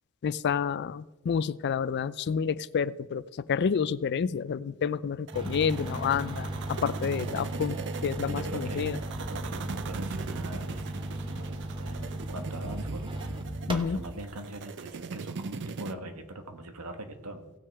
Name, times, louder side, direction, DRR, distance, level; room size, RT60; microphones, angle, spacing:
voice 1, 0.2-9.0 13.7-14.0, left 6 dB, 50° left, 18 dB, 0.4 m, -29 dB
sound 1, 5.3-14.2, right 1 dB, 25° right, 1.0 m, -36 dB
sound 2, 5.3-15.9, right 5 dB, 55° right, 0.5 m, -41 dB
voice 2, 8.3-8.9 9.3-17.5, right 1 dB, 80° right, 6 dB, 1.4 m, -42 dB
17.0 x 6.3 x 4.7 m, 1.1 s
head